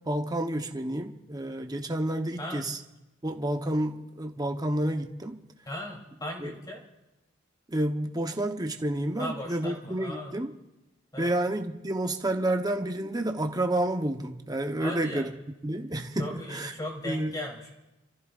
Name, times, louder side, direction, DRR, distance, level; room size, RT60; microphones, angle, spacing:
voice 1, 0.1-2.8 3.2-5.4 6.4-6.5 7.7-10.5 11.2-15.3 15.6-16.7 17.0-17.3, right 1 dB, 20° right, 1.0 m, -30 dB
voice 2, 5.7-6.8 9.2-10.4 11.1-11.3 14.8-15.3 16.2-17.7, left 1 dB, 20° left, 3.3 m, -37 dB
28.0 x 14.5 x 2.5 m
head